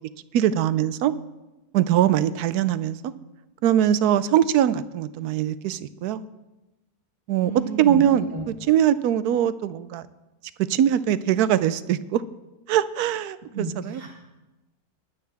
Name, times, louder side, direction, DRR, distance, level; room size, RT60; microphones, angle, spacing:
voice 1, 0.3-1.1 1.7-3.1 3.6-6.2 7.3-7.5 7.8-10.0 10.6-12.2 12.7-14.0, right 10 dB, 85° right, 15 dB, 1.1 m, -22 dB
voice 2, 7.4-8.0 8.3-8.4 13.5-14.1, right 5 dB, 55° right, -2 dB, 2.1 m, -32 dB
21.0 x 8.4 x 3.4 m, 1.0 s
omnidirectional pair, 1.6 m